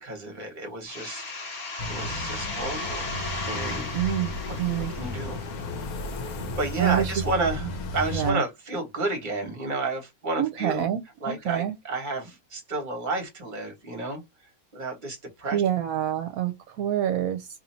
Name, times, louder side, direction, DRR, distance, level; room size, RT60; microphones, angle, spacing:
voice 1, 0.0-1.2 1.8-3.1 3.4-3.9 4.5-4.6 4.9-5.4 6.6-7.7 7.9-10.9 11.2-14.2 14.7-15.6, right 2 dB, 35° right, 1.3 m, -31 dB
sound 1, 0.9-6.3, left 2 dB, 40° left, 0.9 m, -36 dB
sound 2, 1.8-8.3, left 2 dB, 80° left, 1.1 m, -34 dB
voice 2, 3.9-4.3 4.6-4.9 6.8-7.1 8.1-8.4 10.4-11.7 15.5-17.5, right 11 dB, 75° right, 1.0 m, -26 dB
2.8 x 2.7 x 4.2 m
omnidirectional pair, 1.5 m